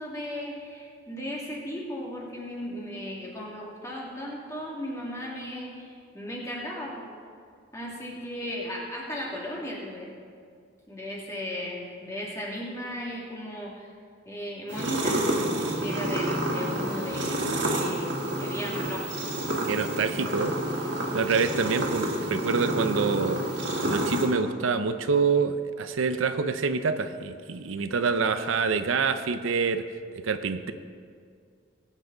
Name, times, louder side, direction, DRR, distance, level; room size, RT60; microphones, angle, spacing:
voice 1, 0.0-7.1 7.7-10.1 10.9-13.9 14.3-15.2 15.8-19.1, equal, 15° left, -4 dB, 2.1 m, -36 dB
sound 1, 14.7-24.3, right 1 dB, 60° right, 2.0 m, -29 dB
voice 2, 19.6-20.5 21.1-23.4 23.8-29.8 30.2-30.7, right 4 dB, 90° right, 10 dB, 0.6 m, -26 dB
20.0 x 8.4 x 3.9 m, 2.2 s
head